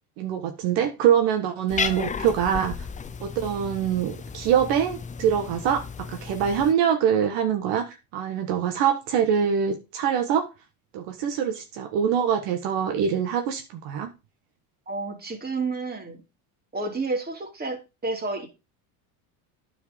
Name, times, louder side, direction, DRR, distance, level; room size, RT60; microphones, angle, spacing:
voice 1, 0.2-2.7 3.2-10.5 10.9-14.1, right 8 dB, 70° right, 6 dB, 1.5 m, -24 dB
Cat, 1.7-6.7, left 6 dB, 20° left, 0.5 m, -34 dB
voice 2, 14.9-16.2 16.7-18.5, right 3 dB, 20° right, 2 dB, 2.8 m, -30 dB
9.6 x 4.8 x 5.0 m, 0.28 s
supercardioid pair, 95°, 43 cm